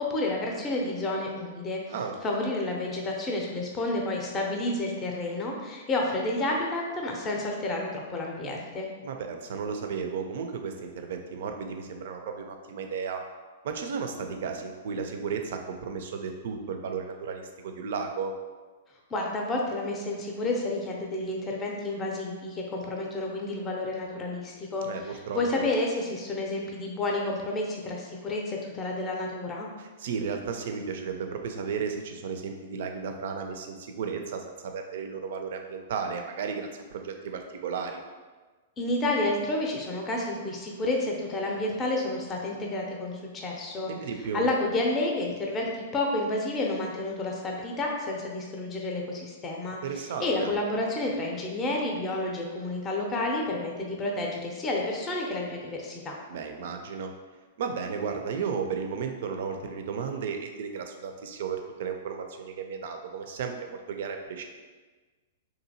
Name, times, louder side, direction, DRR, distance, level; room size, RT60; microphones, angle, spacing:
voice 1, 0.0-1.8 2.2-8.9 19.1-29.7 38.8-43.9 44.3-56.2, left 2 dB, 25° left, -1 dB, 0.5 m, -30 dB
voice 2, 9.0-13.2 13.6-18.3 24.8-25.6 29.8-38.0 43.9-44.4 49.8-50.5 56.3-57.1 57.6-64.6, right 6 dB, 65° right, 5 dB, 0.4 m, -34 dB
2.8 x 2.5 x 2.7 m, 1.3 s
hypercardioid pair, 110°, 0 cm